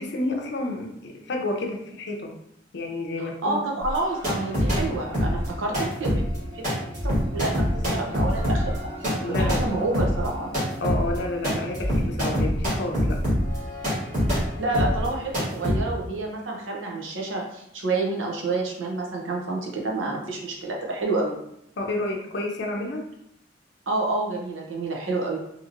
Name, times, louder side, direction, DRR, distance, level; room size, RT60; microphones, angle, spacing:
voice 1, 0.0-2.3 2.7-3.6 9.2-9.7 10.8-13.2 21.8-23.1, left 2 dB, 60° left, 2 dB, 0.5 m, -30 dB
voice 2, 3.2-6.2 6.5-6.6 7.0-8.9 9.3-10.5 14.6-21.3 23.9-25.4, right 2 dB, 85° right, -1 dB, 0.7 m, -28 dB
sound 1, 3.8-4.8 5.1-14.5 14.7-15.1 15.3-15.8, equal, 45° right, 1.4 m, -25 dB
2.8 x 2.7 x 2.5 m, 0.77 s
head